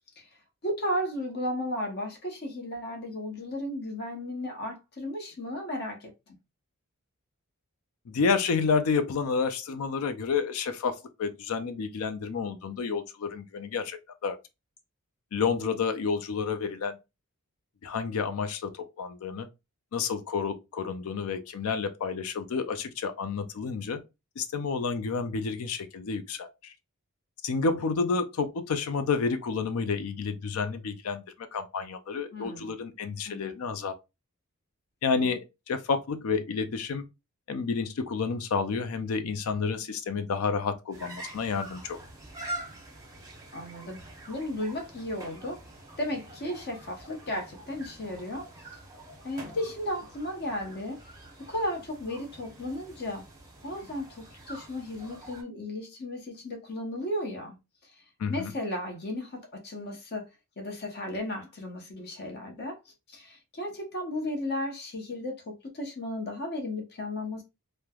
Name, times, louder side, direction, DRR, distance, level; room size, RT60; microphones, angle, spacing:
voice 1, 0.6-6.4 32.3-32.7 33.3-33.5 43.5-45.6 46.0-48.4 49.2-51.0 51.5-53.2 53.6-57.6 58.3-60.2 60.6-62.8 63.1-67.4, left 1 dB, 50° left, 0.8 m, -34 dB
voice 2, 8.1-14.4 15.3-17.0 17.8-19.5 19.9-24.0 24.4-26.7 27.4-33.9 35.0-37.0 37.5-42.0 58.2-58.5, left 5 dB, 70° left, 0.4 m, -30 dB
sound 1, 40.9-55.4, right 1 dB, 15° right, 0.7 m, -45 dB
3.1 x 2.1 x 2.3 m
head